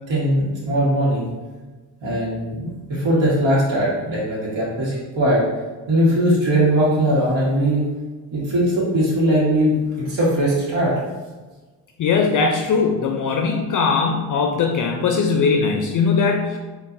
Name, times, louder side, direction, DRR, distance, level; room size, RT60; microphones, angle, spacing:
voice 1, 0.1-1.3 2.0-5.5 5.9-7.9 8.3-10.9, right 1 dB, 70° right, -7 dB, 1.5 m, -20 dB
voice 2, 12.0-16.6, left 5 dB, 45° left, 2 dB, 0.5 m, -20 dB
4.5 x 2.6 x 2.6 m, 1.3 s
supercardioid pair, 70°, 48 cm